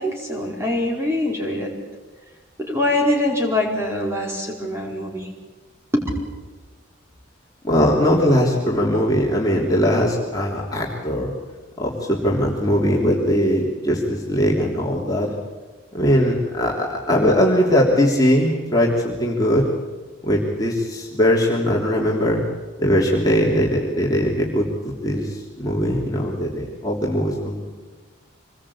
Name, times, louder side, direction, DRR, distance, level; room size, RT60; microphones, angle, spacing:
voice 1, 0.0-1.7 2.6-5.3 5.9-6.0, left 1 dB, 15° right, -1 dB, 4.9 m, -23 dB
voice 2, 7.6-11.3 11.8-15.3 15.9-19.7 20.2-22.4 22.8-27.6, equal, 20° left, -3 dB, 3.2 m, -20 dB
26.5 x 20.5 x 8.7 m, 1.3 s
head